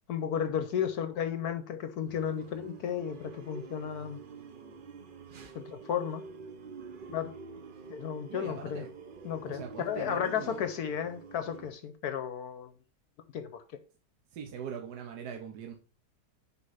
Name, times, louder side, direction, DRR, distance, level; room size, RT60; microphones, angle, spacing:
voice 1, 0.1-4.2 5.5-6.2 7.1-7.3 7.9-8.8 9.2-12.7 13.3-13.6, left 8 dB, 70° left, 1.1 m, -33 dB
sound 1, 2.1-11.7, right 4 dB, 50° right, 0.6 m, -47 dB
voice 2, 8.3-8.9 9.5-10.6 14.3-15.7, right 7 dB, 70° right, 1.5 m, -41 dB
6.4 x 5.2 x 5.6 m
omnidirectional pair, 1.8 m